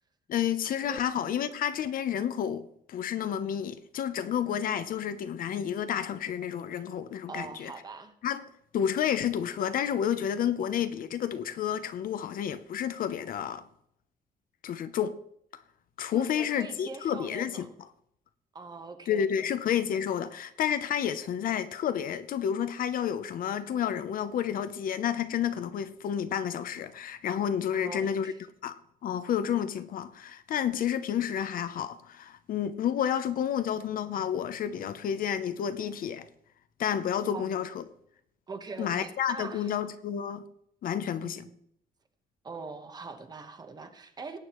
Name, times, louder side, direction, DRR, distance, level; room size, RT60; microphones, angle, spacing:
voice 1, 0.3-7.7 8.2-8.5 8.7-13.6 14.6-15.2 16.0-17.7 19.1-28.3 28.6-28.8 29.0-36.3 36.8-37.8 38.8-40.4 40.8-41.5, left 9 dB, 60° left, 0.7 m, -30 dB
voice 2, 7.3-8.1 16.1-17.7 18.5-19.5 27.7-28.4 37.3-37.5 38.5-39.7 41.2-41.5 42.4-44.4, right 4 dB, 25° right, 1.1 m, -42 dB
18.0 x 8.7 x 3.0 m
cardioid pair, 175°, 16 cm